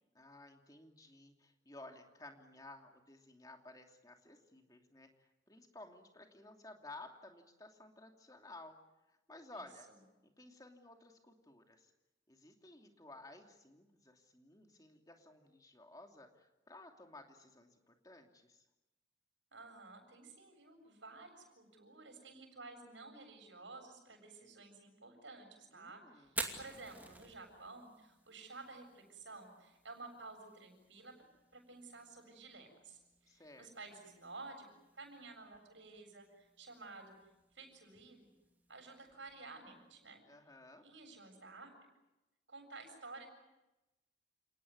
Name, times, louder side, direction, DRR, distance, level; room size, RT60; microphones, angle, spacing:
voice 1, 0.1-8.8 9.1-9.9 10.2-11.9 12.3-18.6 25.7-26.3 33.3-33.7 40.3-40.8, left 2 dB, 20° left, 3 dB, 2.8 m, -56 dB
voice 2, 19.5-31.1 31.5-34.7 34.9-37.1 37.5-38.3 38.7-40.2 40.8-41.7 42.5-43.3, right 3 dB, 75° right, 4 dB, 7.3 m, -53 dB
Fire, 26.2-40.1, right 2 dB, 10° right, 2.6 m, -52 dB
29.5 x 18.5 x 9.6 m, 1.0 s
head